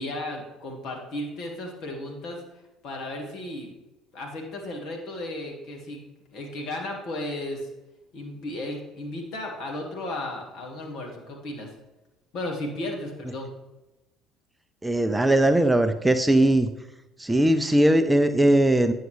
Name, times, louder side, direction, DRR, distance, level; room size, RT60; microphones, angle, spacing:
voice 1, 0.0-2.4 2.8-3.7 4.1-6.0 6.3-7.7 8.1-11.7 12.3-13.5, left 1 dB, 60° left, 1 dB, 1.8 m, -34 dB
voice 2, 14.8-16.7 17.2-18.9, right 1 dB, 10° right, 9 dB, 0.5 m, -20 dB
9.2 x 6.4 x 3.3 m, 1.0 s
figure-of-eight pair, 60°, 0 cm